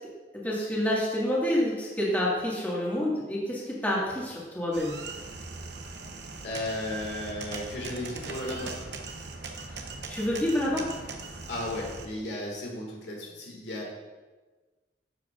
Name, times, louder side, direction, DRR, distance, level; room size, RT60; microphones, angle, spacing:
voice 1, 0.3-4.9 9.7-9.8 10.1-10.9, left 1 dB, 10° left, -6 dB, 1.8 m, -28 dB
sound 1, 4.7-12.1, right 3 dB, 70° right, 0.9 m, -40 dB
voice 2, 6.4-8.7 11.5-13.9, left 1 dB, 85° left, -2 dB, 2.0 m, -34 dB
10.5 x 7.5 x 2.5 m, 1.3 s
head